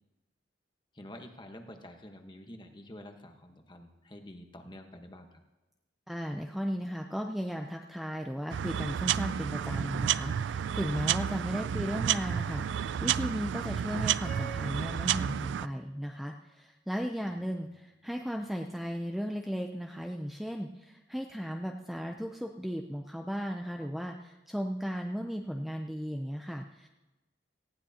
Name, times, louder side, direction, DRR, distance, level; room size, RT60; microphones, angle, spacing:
voice 1, 0.9-5.4 17.2-17.7 18.3-18.4, left 1 dB, 25° left, 5 dB, 1.1 m, -49 dB
voice 2, 6.1-26.9, equal, ahead, 3 dB, 0.5 m, -36 dB
sound 1, 8.5-15.7, right 9 dB, 80° right, 0.3 m, -31 dB
sound 2, 14.2-16.6, right 4 dB, 50° left, 2.3 m, -50 dB
18.5 x 15.0 x 2.8 m, 1.1 s
head